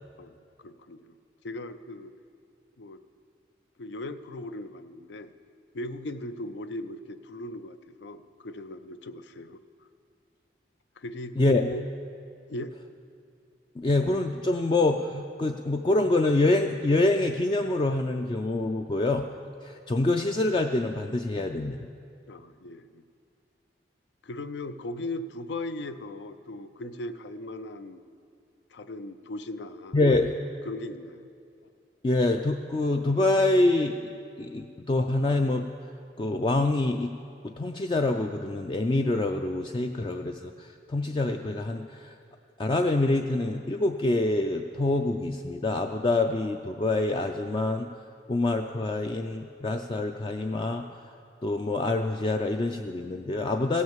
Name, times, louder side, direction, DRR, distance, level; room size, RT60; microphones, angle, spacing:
voice 1, 0.2-1.1 1.4-2.1 2.8-3.0 3.8-5.3 5.7-9.6 11.0-11.9 12.5-12.7 22.3-23.0 24.2-28.0 28.7-30.0 30.7-31.3, left 1 dB, 80° left, 12 dB, 0.5 m, -38 dB
voice 2, 13.8-19.3 19.6-21.9 29.9-30.3 32.0-34.1 34.4-35.7 36.2-37.1 37.4-42.1 42.6-47.9 48.3-51.0 51.4-53.8, left 2 dB, 25° left, 4 dB, 0.3 m, -26 dB
16.0 x 6.3 x 7.3 m, 2.4 s
head